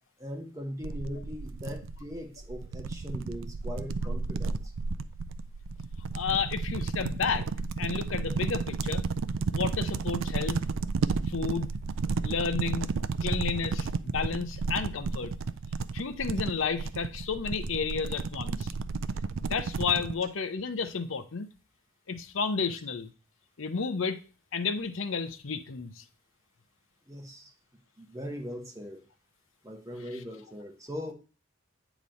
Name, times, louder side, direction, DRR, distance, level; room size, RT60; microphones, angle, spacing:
voice 1, 0.2-4.7 27.1-27.5 28.0-29.0 29.6-31.1, equal, 15° right, 1.1 m, -40 dB
sound 1, 0.8-20.2, right 4 dB, 65° right, 0.4 m, -32 dB
voice 2, 6.1-7.5 7.8-9.0 9.5-10.6 11.3-11.7 12.2-12.9 13.2-15.3 15.9-18.7 19.4-21.5 22.1-23.1 23.6-24.2 24.5-26.0, left 5 dB, 65° left, 0.7 m, -31 dB
8.4 x 3.1 x 5.1 m
head